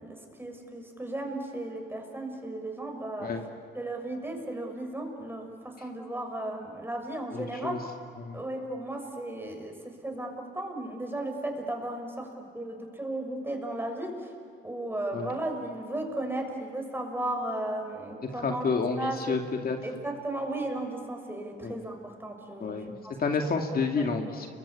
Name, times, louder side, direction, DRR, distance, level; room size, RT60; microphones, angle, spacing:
voice 1, 0.0-3.3 3.7-7.8 8.3-14.3 14.6-18.7 19.0-19.4 19.8-23.2 23.9-24.1, right 1 dB, 10° right, 3 dB, 6.4 m, -35 dB
voice 2, 7.3-7.8 8.2-8.4 15.1-15.3 18.4-19.8 21.6-21.8 22.6-22.9 23.2-24.5, left 4 dB, 50° left, 3 dB, 2.4 m, -29 dB
29.5 x 23.5 x 8.7 m, 2.6 s
cardioid pair, 90°, 20 cm